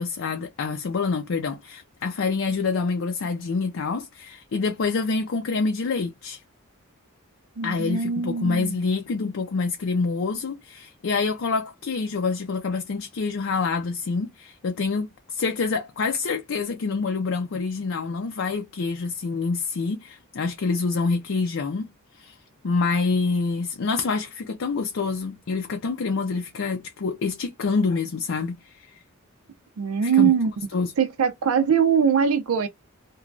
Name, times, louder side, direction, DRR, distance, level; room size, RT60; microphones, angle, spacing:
voice 1, 0.0-6.4 7.6-21.9 22.2-22.3 22.6-28.9 30.0-30.3 30.7-30.9, left 4 dB, 60° left, 0.5 m, -26 dB
voice 2, 7.6-8.8 29.8-30.5 31.0-32.7, right 7 dB, 75° right, 0.4 m, -22 dB
3.0 x 2.2 x 2.5 m
head